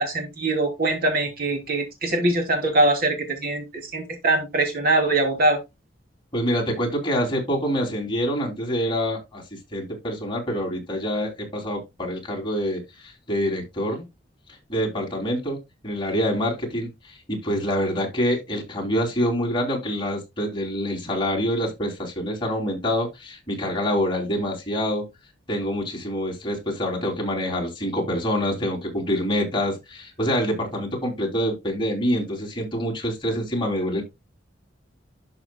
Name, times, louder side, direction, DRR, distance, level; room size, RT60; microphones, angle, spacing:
voice 1, 0.0-5.6, right 2 dB, 55° right, 2.9 m, -22 dB
voice 2, 6.3-9.4 9.7-14.0 14.7-15.6 15.8-25.0 25.5-34.0, equal, 25° left, 3.1 m, -26 dB
12.0 x 5.8 x 2.3 m
head